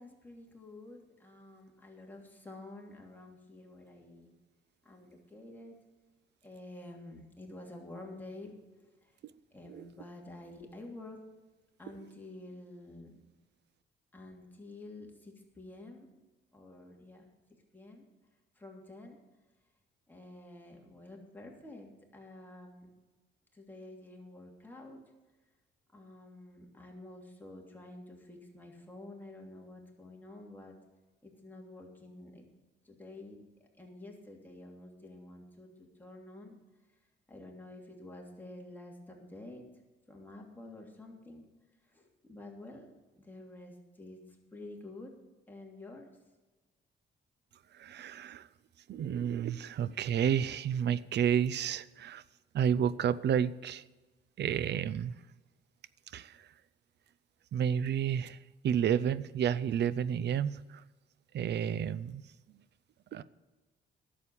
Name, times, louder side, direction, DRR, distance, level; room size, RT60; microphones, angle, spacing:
voice 1, 0.0-4.3 4.8-5.8 6.4-9.1 9.5-11.2 11.8-13.2 14.1-16.1 16.5-17.3 17.7-18.1 18.6-19.2 20.1-22.9 23.5-25.0 25.9-30.7 31.2-32.5 32.8-33.4 33.7-36.6 37.3-39.7 40.1-41.5 41.9-44.2 44.5-45.1 45.5-46.1, left 2 dB, 10° left, 0 dB, 2.9 m, -49 dB
voice 2, 47.7-48.5 48.9-52.2 52.5-53.8 54.4-55.1 56.1-56.4 57.5-58.4 58.6-60.8 61.3-62.2 63.1-63.2, right 8 dB, 60° right, 18 dB, 0.6 m, -30 dB
11.0 x 7.4 x 8.4 m, 1.2 s
cardioid pair, 90°, 20 cm